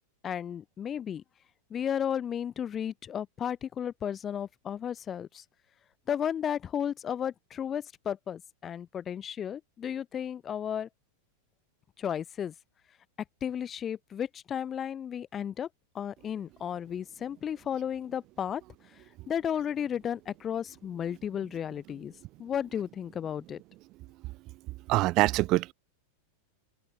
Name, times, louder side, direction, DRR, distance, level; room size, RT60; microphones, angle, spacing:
voice 1, 0.2-1.2 1.7-5.4 6.1-10.9 12.0-12.5 13.4-15.7 15.9-18.6 18.9-22.1 22.4-23.6, left 9 dB, 25° left, 2.1 m, -34 dB
voice 2, 24.9-25.7, right 19 dB, 40° right, 1.0 m, -24 dB
open air
figure-of-eight pair, 90°, 0 cm